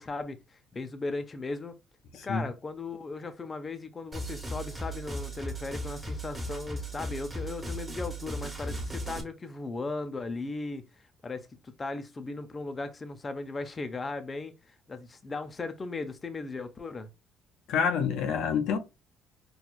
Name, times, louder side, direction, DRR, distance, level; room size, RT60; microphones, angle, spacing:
voice 1, 0.0-1.7 2.2-10.8 11.2-17.1, left 3 dB, 25° left, 0.5 m, -37 dB
sound 1, 4.1-9.2, right 1 dB, 20° right, 1.2 m, -37 dB
voice 2, 17.7-18.8, left 6 dB, 70° left, 0.6 m, -27 dB
4.4 x 2.3 x 2.3 m
cardioid pair, 100°, 0 cm